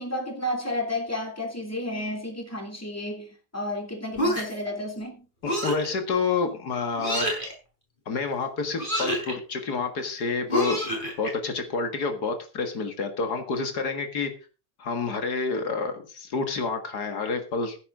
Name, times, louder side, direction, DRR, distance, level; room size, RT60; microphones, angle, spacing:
voice 1, 0.0-3.3 3.5-5.2, left 1 dB, 10° left, 3.1 m, -31 dB
sound 1, 4.2-4.7 5.5-5.9 7.0-7.5 8.8-9.3 10.5-11.3, equal, 30° left, 5.2 m, -27 dB
voice 2, 5.4-7.3 8.1-10.8 11.2-14.3 14.8-17.8, left 4 dB, 85° left, 2.3 m, -28 dB
15.0 x 9.9 x 3.8 m
omnidirectional pair, 1.7 m